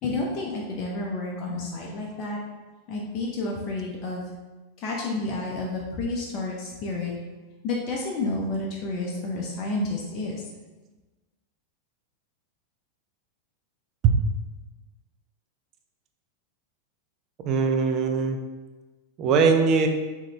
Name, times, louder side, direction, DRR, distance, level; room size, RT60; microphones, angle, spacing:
voice 1, 0.0-2.4 2.9-4.3 4.8-7.1 7.6-10.4, left 2 dB, 35° left, -2 dB, 0.6 m, -30 dB
voice 2, 17.4-18.4 19.2-19.9, right 5 dB, 35° right, 5 dB, 0.4 m, -21 dB
3.7 x 3.0 x 3.3 m, 1.2 s
figure-of-eight pair, 90°, 0 cm